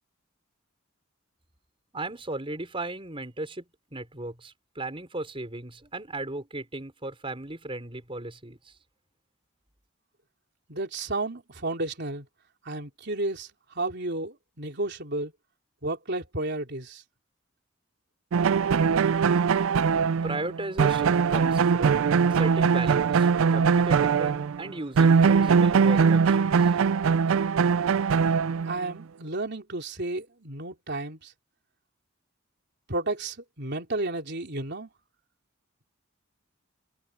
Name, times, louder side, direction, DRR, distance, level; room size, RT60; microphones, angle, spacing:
voice 1, 1.9-3.6 3.9-8.7 20.2-26.7, right 2 dB, 25° right, 4.7 m, -36 dB
voice 2, 10.7-12.3 12.6-13.5 13.7-15.3 15.8-17.0 28.7-31.3 32.9-34.9, right 2 dB, 55° right, 3.7 m, -32 dB
sound 1, 18.3-24.7 25.0-28.9, right 6 dB, 80° right, 0.4 m, -21 dB
head